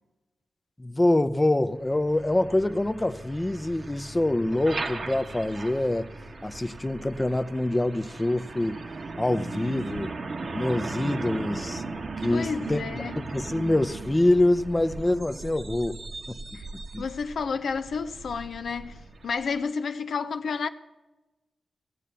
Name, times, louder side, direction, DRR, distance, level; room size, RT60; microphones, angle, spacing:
voice 1, 0.8-6.1 6.4-8.8 9.2-10.1 10.5-11.8 12.2-12.9 13.2-16.0 16.3-16.4 16.9-17.0, left 1 dB, 20° left, 0.6 m, -25 dB
Truck, 1.8-19.5, right 3 dB, 65° right, 1.2 m, -38 dB
voice 2, 12.3-13.2 16.5-16.7 17.0-20.7, left 5 dB, 80° left, 0.5 m, -31 dB
16.5 x 7.3 x 6.9 m
cardioid pair, 50°, 0 cm